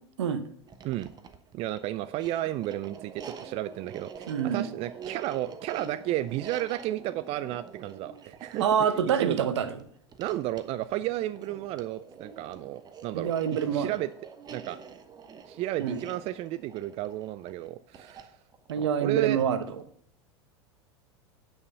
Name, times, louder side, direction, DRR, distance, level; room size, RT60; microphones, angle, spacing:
sound 1, 0.6-19.9, right 6 dB, 30° right, 1.1 m, -46 dB
voice 1, 1.5-8.9 9.2-9.5 10.2-13.3 13.7-14.1 14.5-14.8 15.5-18.3 18.8-19.4, right 14 dB, 45° right, 14 dB, 0.4 m, -33 dB
voice 2, 4.3-4.7 8.6-9.8 13.1-13.9 15.8-16.0 18.7-19.6, right 8 dB, 80° right, 11 dB, 1.0 m, -26 dB
9.5 x 5.7 x 5.3 m, 0.63 s
hypercardioid pair, 95°, 14 cm